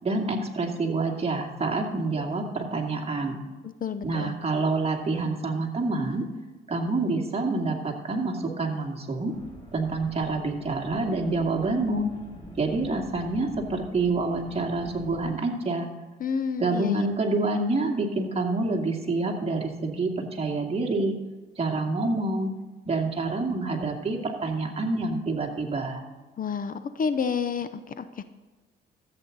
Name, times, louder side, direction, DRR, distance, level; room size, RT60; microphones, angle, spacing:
voice 1, 0.0-3.4 4.0-6.2 6.7-9.3 9.7-12.1 12.6-15.9 16.6-21.1 21.6-22.5 22.9-26.0, right 3 dB, 30° right, 1 dB, 2.3 m, -27 dB
voice 2, 3.6-4.4 16.2-17.1 26.4-28.2, left 6 dB, 45° left, 11 dB, 0.7 m, -30 dB
sound 1, 9.3-15.3, left 1 dB, 25° left, 3.9 m, -46 dB
13.5 x 8.5 x 4.0 m, 1.3 s
cardioid pair, 90°, 20 cm